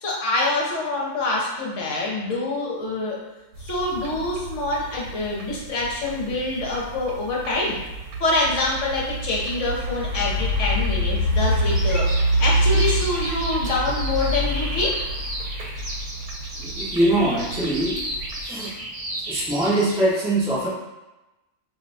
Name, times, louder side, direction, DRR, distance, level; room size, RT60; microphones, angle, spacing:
voice 1, 0.0-3.2 3.6-7.8 8.2-15.0, left 2 dB, 60° left, -4 dB, 1.0 m, -25 dB
sound 1, 3.5-18.4, equal, 80° right, 1.0 m, -27 dB
Bird vocalization bird call bird song, 11.5-19.9, right 1 dB, 30° right, 1.0 m, -33 dB
voice 2, 16.6-18.0 18.4-18.7 19.2-20.7, right 1 dB, 10° right, -8 dB, 0.3 m, -22 dB
2.6 x 2.1 x 3.9 m, 1.0 s
omnidirectional pair, 1.6 m